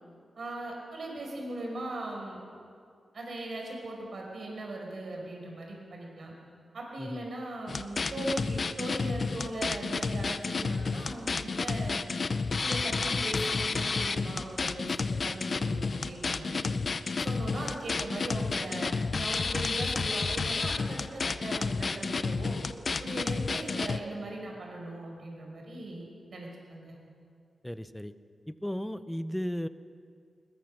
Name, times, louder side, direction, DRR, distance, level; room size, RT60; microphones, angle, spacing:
voice 1, 0.4-2.4 3.1-6.3 6.7-12.0 12.6-16.7 17.2-22.6 23.0-26.9, right 1 dB, 55° right, -1 dB, 5.5 m, -39 dB
sound 1, 7.7-24.0, left 4 dB, 40° left, 0.7 m, -31 dB
voice 2, 27.6-28.1 28.5-29.7, equal, 5° left, 12 dB, 0.7 m, -35 dB
21.5 x 21.0 x 6.5 m, 2.3 s
wide cardioid pair, 150°, 0 cm